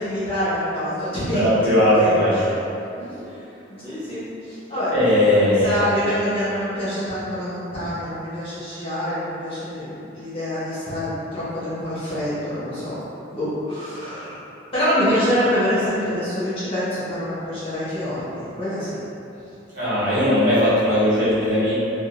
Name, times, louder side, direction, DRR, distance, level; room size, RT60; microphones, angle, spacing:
voice 1, 0.0-1.6 1.9-2.6 3.0-3.3 3.7-5.1 5.4-13.0 13.3-14.4 14.7-19.0, equal, 30° left, -13 dB, 1.1 m, -26 dB
voice 2, 1.3-2.4 4.9-5.8 19.7-21.7, left 1 dB, 55° right, -13 dB, 1.3 m, -18 dB
3.6 x 2.3 x 2.5 m, 2.8 s
head